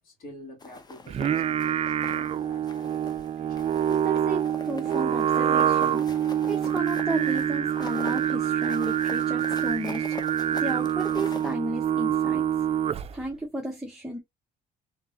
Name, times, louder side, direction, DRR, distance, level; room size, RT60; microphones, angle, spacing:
voice 1, 0.0-3.8, left 1 dB, 60° left, 2.7 m, -48 dB
sound 1, 0.6-2.3 2.7-3.3 3.6-11.5, left 3 dB, 25° left, 0.9 m, -43 dB
Singing, 1.1-13.2, right 9 dB, 35° right, 0.4 m, -26 dB
voice 2, 3.9-6.0 6.5-10.3 10.6-12.4 13.1-14.2, right 1 dB, 5° right, 0.9 m, -33 dB
3.8 x 3.5 x 2.8 m
cardioid pair, 110°, 17 cm